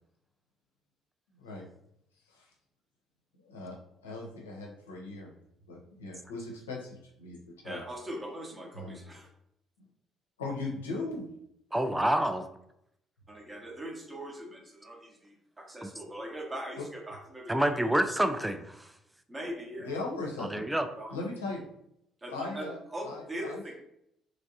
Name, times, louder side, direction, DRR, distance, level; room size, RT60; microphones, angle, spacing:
voice 1, 1.3-1.6 2.3-2.5 3.3-5.3 5.7-7.8 8.7-9.0 10.4-11.3 16.7-16.9 19.8-20.6 21.1-21.6 22.3-22.8 23.0-23.6, left 3 dB, 85° left, -1 dB, 0.5 m, -38 dB
voice 2, 7.6-9.3 13.3-17.9 19.3-20.0 21.0-21.1 22.2-23.7, right 1 dB, 25° right, 1 dB, 0.8 m, -41 dB
voice 3, 11.7-12.5 15.8-15.9 17.5-18.9 20.4-20.9, right 1 dB, 10° right, 7 dB, 0.3 m, -28 dB
3.0 x 2.5 x 2.6 m, 0.77 s
hypercardioid pair, 50°, 0 cm